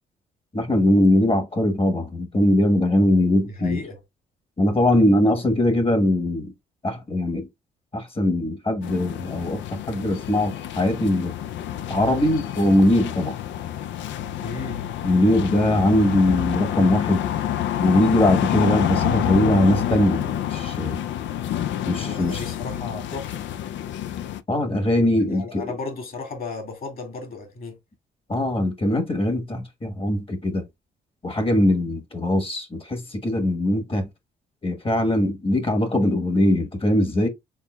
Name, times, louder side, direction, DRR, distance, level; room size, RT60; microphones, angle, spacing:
voice 1, 0.5-3.8 4.6-6.5 6.8-7.5 7.9-11.3 11.9-13.4 15.0-17.2 17.8-21.0 21.9-22.4 24.5-25.7 28.3-30.6 31.2-34.1 34.6-37.3, left 1 dB, 25° left, 1.2 m, -21 dB
voice 2, 3.4-4.0 14.4-14.8 22.0-23.4 25.3-27.8, left 3 dB, 45° left, 1.9 m, -34 dB
sound 1, 8.8-24.4, left 11 dB, 70° left, 0.4 m, -28 dB
4.5 x 3.5 x 2.2 m
cardioid pair, 90°, 20 cm